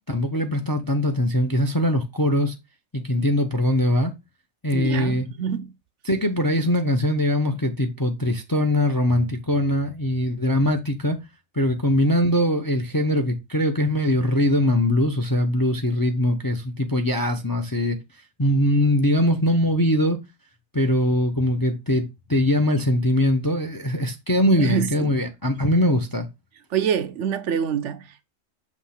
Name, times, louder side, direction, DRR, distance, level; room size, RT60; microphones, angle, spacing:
voice 1, 0.1-2.5 2.9-4.1 4.6-5.3 6.1-11.2 11.5-18.0 18.4-20.2 20.7-26.3, left 1 dB, 25° left, 0.5 m, -22 dB
voice 2, 4.7-5.7 24.6-25.2 26.7-28.3, right 7 dB, 65° right, 0.9 m, -26 dB
6.3 x 3.1 x 5.7 m
omnidirectional pair, 1.4 m